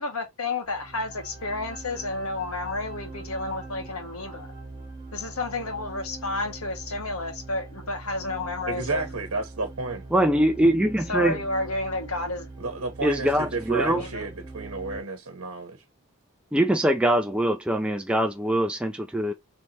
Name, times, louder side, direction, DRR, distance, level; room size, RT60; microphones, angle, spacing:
voice 1, 0.0-4.5 5.1-9.0 11.1-12.5 13.8-14.3, left 2 dB, 85° left, 1.5 m, -31 dB
sound 1, 0.7-15.0, right 2 dB, 25° right, 1.3 m, -42 dB
voice 2, 8.7-10.0 12.6-15.8, right 3 dB, 75° right, 1.0 m, -31 dB
voice 3, 10.1-11.4 13.0-14.0 16.5-19.3, right 1 dB, 5° right, 0.4 m, -23 dB
4.2 x 3.4 x 2.9 m
head